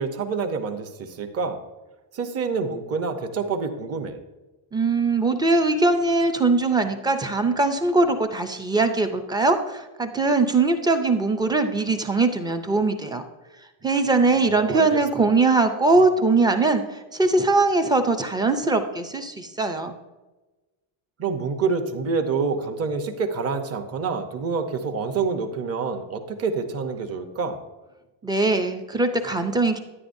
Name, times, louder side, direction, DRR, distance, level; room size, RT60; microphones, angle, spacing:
voice 1, 0.0-1.6 2.1-4.2 14.4-15.0 21.2-27.6, right 5 dB, 30° right, 6 dB, 0.8 m, -27 dB
voice 2, 4.7-13.3 13.8-20.0 28.2-29.8, right 3 dB, 10° right, 6 dB, 0.4 m, -21 dB
10.0 x 9.8 x 2.6 m, 1.1 s
cardioid pair, 135°, 49 cm